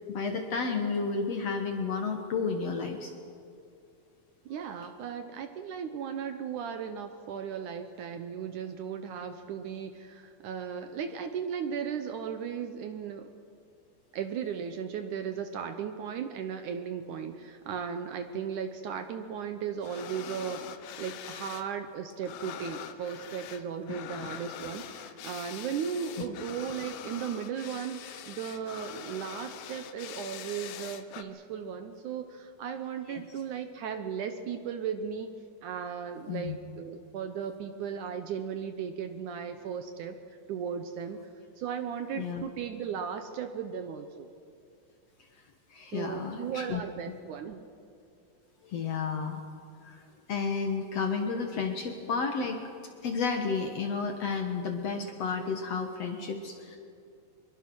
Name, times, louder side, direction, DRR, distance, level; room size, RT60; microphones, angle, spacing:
voice 1, 0.1-3.1 24.1-24.3 33.1-33.2 36.3-36.6 42.2-42.4 45.7-46.8 48.6-49.4 49.8-50.0 50.3-52.6 53.0-56.8, left 5 dB, 60° left, 4 dB, 1.9 m, -32 dB
voice 2, 4.5-13.3 14.1-35.3 35.6-41.2 41.6-44.3 45.9-47.6, right 7 dB, 70° right, 8 dB, 2.1 m, -36 dB
sound 1, 19.8-21.7 21.9-31.2, left 10 dB, 80° left, 2.7 m, -43 dB
24.5 x 22.5 x 6.2 m, 2.5 s
omnidirectional pair, 4.3 m